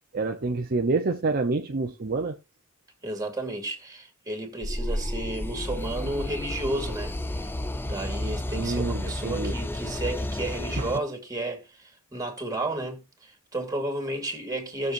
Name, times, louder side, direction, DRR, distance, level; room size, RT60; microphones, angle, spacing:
voice 1, 0.1-2.4 8.5-9.5 10.8-10.9, right 3 dB, 45° right, 0.7 m, -27 dB
voice 2, 3.0-7.5 7.8-14.9, right 2 dB, 15° right, 2.5 m, -32 dB
sound 1, 4.6-11.0, left 1 dB, 10° left, 0.5 m, -31 dB
18.0 x 6.8 x 2.6 m
head